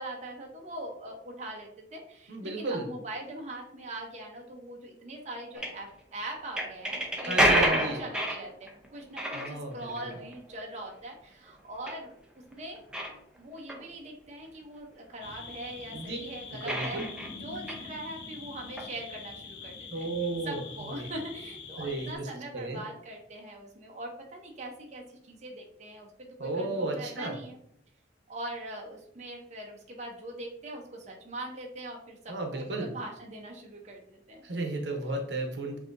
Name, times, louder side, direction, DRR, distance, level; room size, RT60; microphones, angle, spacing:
voice 1, 0.0-12.1 12.5-12.8 13.4-17.0 17.4-20.1 20.4-27.6 28.3-34.4, right 1 dB, 40° right, 0 dB, 0.7 m, -42 dB
voice 2, 2.3-2.9 7.3-8.0 9.3-10.2 15.9-16.2 16.5-17.1 19.9-21.1 21.8-22.3 22.5-22.8 26.4-27.4 32.3-32.9 34.4-35.8, right 2 dB, 80° right, 3 dB, 0.8 m, -34 dB
sound 1, 5.5-5.7 6.6-8.9 9.2-10.6 11.9-12.0 12.5-12.6 12.9-13.2 13.7-13.8 16.7-17.8 18.6-18.8, right 1 dB, 5° right, 0.6 m, -28 dB
sound 2, 15.2-22.2, left 5 dB, 70° left, 0.6 m, -44 dB
7.7 x 2.7 x 2.5 m, 0.71 s
head